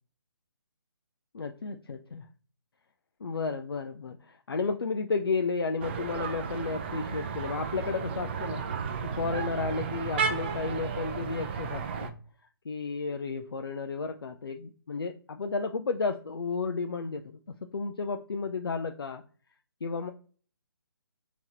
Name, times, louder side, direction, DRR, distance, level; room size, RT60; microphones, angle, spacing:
voice 1, 1.3-2.2 3.2-8.6 9.0-12.1 12.7-17.4 17.7-19.2 19.8-20.1, left 4 dB, 70° left, 6 dB, 0.5 m, -32 dB
sound 1, 5.8-12.1, right 6 dB, 25° right, 0.5 m, -33 dB
3.5 x 2.9 x 4.2 m, 0.42 s
figure-of-eight pair, 140°, 13 cm